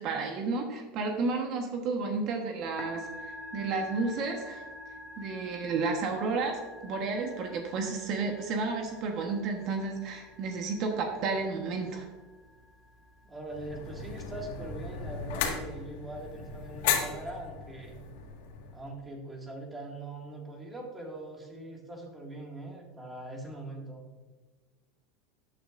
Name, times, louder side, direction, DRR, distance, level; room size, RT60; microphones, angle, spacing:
voice 1, 0.0-4.6 5.2-12.1, right 4 dB, 50° right, 3 dB, 1.3 m, -32 dB
Musical instrument, 2.6-17.4, left 1 dB, 20° left, 1.7 m, -49 dB
voice 2, 13.2-18.0 18.7-24.0, right 2 dB, 15° right, 0 dB, 2.1 m, -42 dB
sound 1, 13.5-18.9, left 7 dB, 75° left, 1.8 m, -35 dB
13.5 x 8.6 x 2.6 m, 1.3 s
supercardioid pair, 125°, 0 cm